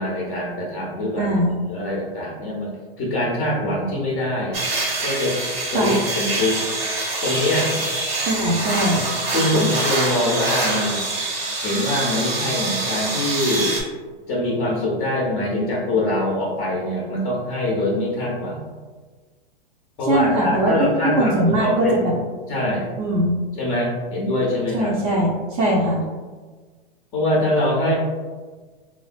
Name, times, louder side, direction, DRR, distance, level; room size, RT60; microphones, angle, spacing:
voice 1, 0.0-1.3 1.7-4.6 5.0-6.6 7.2-7.8 8.9-9.0 9.3-11.0 11.6-13.7 14.3-18.7 20.0-22.0 22.5-22.9 23.6-25.0 27.1-27.9, left 1 dB, 20° left, -5 dB, 0.4 m, -23 dB
voice 2, 1.2-1.5 5.7-6.0 8.2-9.0 20.1-20.9 21.2-22.1 23.0-23.4 24.7-26.0, right 1 dB, 40° right, -5 dB, 0.5 m, -21 dB
sound 1, 4.5-13.8, right 2 dB, 85° right, 1.2 m, -25 dB
3.2 x 2.2 x 2.4 m, 1.4 s
hypercardioid pair, 150°, 30 cm